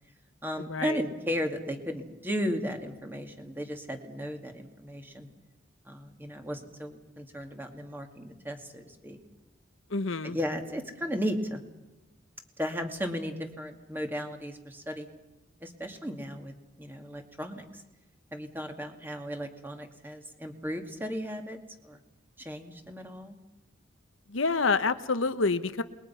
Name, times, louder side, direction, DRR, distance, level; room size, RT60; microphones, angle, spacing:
voice 1, 0.4-5.3 5.9-9.2 10.2-11.6 12.6-15.1 15.6-17.8 18.3-22.0 22.4-23.4, equal, 10° right, 4 dB, 2.2 m, -35 dB
voice 2, 9.9-10.4 24.3-25.8, left 4 dB, 85° left, 10 dB, 1.0 m, -27 dB
28.5 x 21.5 x 5.7 m, 1.1 s
head